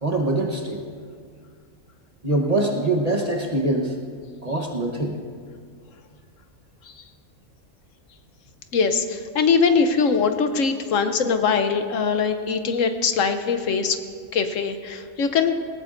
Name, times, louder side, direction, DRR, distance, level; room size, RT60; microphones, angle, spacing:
voice 1, 0.0-0.8 2.2-4.0 4.4-5.2, right 2 dB, 30° right, 0 dB, 1.0 m, -23 dB
voice 2, 8.7-14.0 14.3-15.6, left 5 dB, 70° left, 8 dB, 1.1 m, -22 dB
19.5 x 18.0 x 2.5 m, 2.1 s
omnidirectional pair, 1.5 m